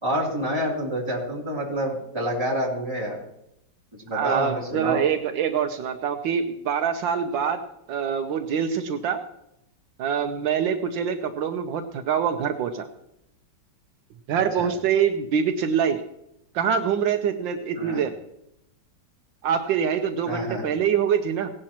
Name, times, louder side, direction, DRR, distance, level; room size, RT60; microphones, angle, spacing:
voice 1, 0.0-3.2 4.1-5.0 14.6-14.7 17.7-18.0 20.3-20.6, equal, 15° right, -4 dB, 3.1 m, -28 dB
voice 2, 4.1-7.6 7.9-9.2 10.0-12.9 14.3-16.0 16.5-18.1 19.4-21.5, right 7 dB, 80° right, 7 dB, 1.4 m, -25 dB
17.5 x 11.5 x 2.9 m, 0.80 s
omnidirectional pair, 2.1 m